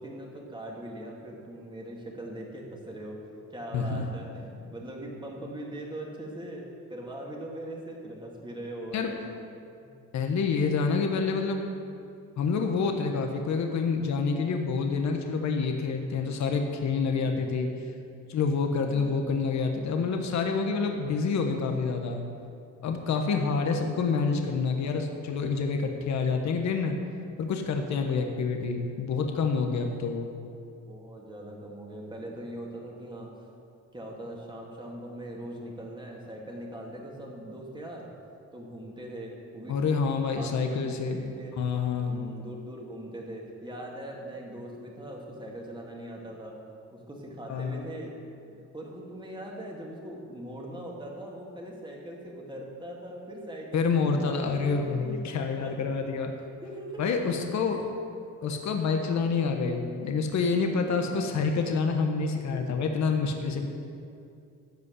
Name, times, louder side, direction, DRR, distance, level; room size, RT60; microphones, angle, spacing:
voice 1, 0.0-3.2 3.5-9.2 9.8-9.9 30.8-33.3 33.9-38.1 38.5-39.8 40.4-41.6 42.0-46.6 46.9-48.2 48.4-55.7 56.4-57.0 57.7-58.2 60.7-61.7 62.3-62.6 63.4-63.7, right 1 dB, 15° right, -2 dB, 2.6 m, -41 dB
voice 2, 3.7-4.0 8.9-9.1 10.1-11.6 12.4-17.7 18.3-22.2 22.8-27.0 27.4-30.4 39.7-42.3 47.5-47.9 53.7-56.3 57.0-57.9 58.4-63.7, left 5 dB, 65° left, 4 dB, 1.3 m, -27 dB
13.5 x 5.3 x 8.3 m, 2.5 s
cardioid pair, 90°, 30 cm